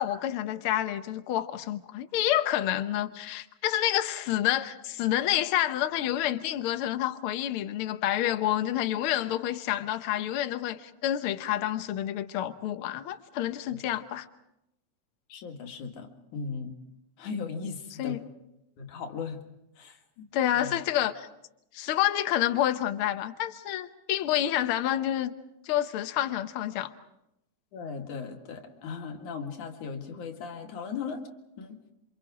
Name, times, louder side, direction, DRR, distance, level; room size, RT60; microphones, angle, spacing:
voice 1, 0.0-14.3 18.0-18.2 20.3-21.3 21.7-25.3 25.6-26.9, left 12 dB, 60° left, 1.6 m, -28 dB
voice 2, 15.3-16.7 17.2-18.2 18.8-19.4 19.8-20.3 20.5-20.8 27.7-31.2 31.6-31.9, left 5 dB, 90° left, 3.5 m, -37 dB
28.0 x 26.0 x 4.9 m
omnidirectional pair, 3.3 m